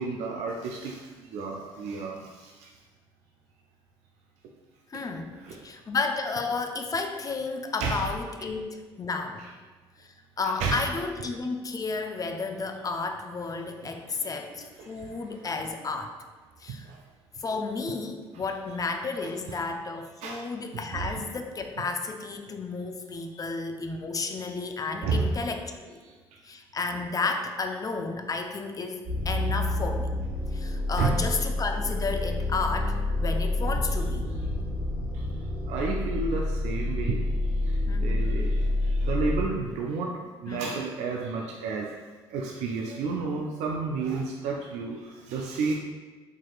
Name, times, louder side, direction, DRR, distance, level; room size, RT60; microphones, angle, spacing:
voice 1, 0.0-2.7 5.3-5.6 7.8-8.1 10.6-10.8 13.8-14.4 14.8-15.5 16.7-17.0 18.3-18.4 19.2-19.6 20.2-20.5 20.9-21.2 22.5-22.6 23.3-23.4 25.0-25.3 26.0-26.1 31.0-31.2 35.1-35.3 35.7-37.2 37.6-41.9 42.3-45.7, right 4 dB, 65° right, 0 dB, 0.4 m, -32 dB
voice 2, 4.9-5.3 5.6-9.4 10.0-16.1 16.6-16.9 17.4-26.0 26.4-30.1 30.5-34.3 37.9-38.2 40.5-40.6, left 4 dB, 30° left, 5 dB, 0.4 m, -32 dB
sound 1, 29.0-39.4, left 2 dB, 15° right, 1.2 m, -28 dB
4.7 x 2.9 x 2.3 m, 1.3 s
hypercardioid pair, 55°, 13 cm